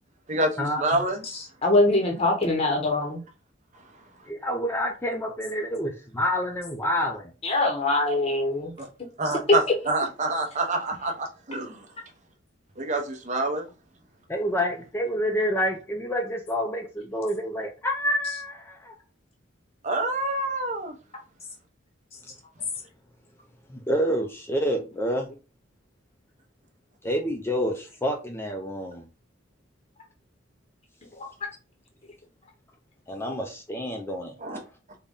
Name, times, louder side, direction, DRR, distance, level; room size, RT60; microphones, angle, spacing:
voice 1, 0.3-1.2 8.8-8.9 9.2-11.9 12.8-13.7 19.8-20.9 34.4-34.6, right 2 dB, 35° right, 0.7 m, -27 dB
voice 2, 1.2-3.2 7.4-8.7 9.3-9.4 31.1-31.3, left 2 dB, 30° left, 0.8 m, -23 dB
voice 3, 4.3-7.3 14.3-18.9 23.7-25.3 27.0-29.0 33.1-34.3, equal, 10° left, 0.4 m, -28 dB
3.9 x 2.2 x 3.5 m
head